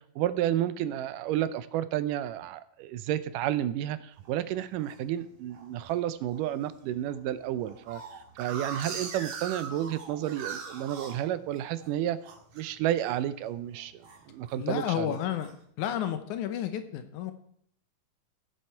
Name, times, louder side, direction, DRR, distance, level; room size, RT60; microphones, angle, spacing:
voice 1, 0.0-12.2 12.5-15.2, right 12 dB, 85° right, 14 dB, 2.2 m, -31 dB
sound 1, 4.2-5.0 5.5-5.9 6.3-6.4 6.7-6.8 7.1-11.9 12.2-12.6 13.0-13.3 13.6-14.6 15.0-15.5, right 5 dB, 60° right, 2.8 m, -41 dB
voice 2, 14.6-15.5 15.8-17.3, left 10 dB, 75° left, 9 dB, 2.1 m, -31 dB
16.0 x 6.7 x 4.5 m, 0.67 s
omnidirectional pair, 3.8 m